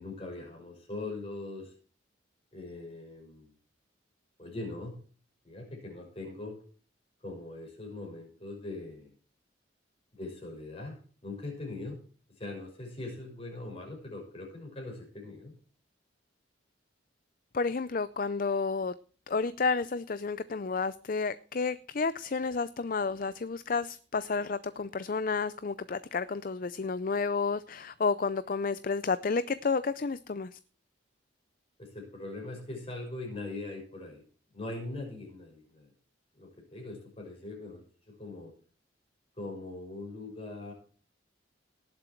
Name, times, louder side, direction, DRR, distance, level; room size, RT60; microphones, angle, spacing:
voice 1, 0.0-1.7 2.5-3.5 4.4-5.0 5.4-6.6 7.2-9.1 10.1-12.0 12.4-15.6 31.8-34.2 34.5-35.9 36.4-38.5 39.4-40.7, left 2 dB, 30° left, 0 dB, 6.0 m, -41 dB
voice 2, 17.5-18.9 19.3-30.6, left 4 dB, 45° left, 15 dB, 0.5 m, -31 dB
18.5 x 7.7 x 4.5 m, 0.41 s
head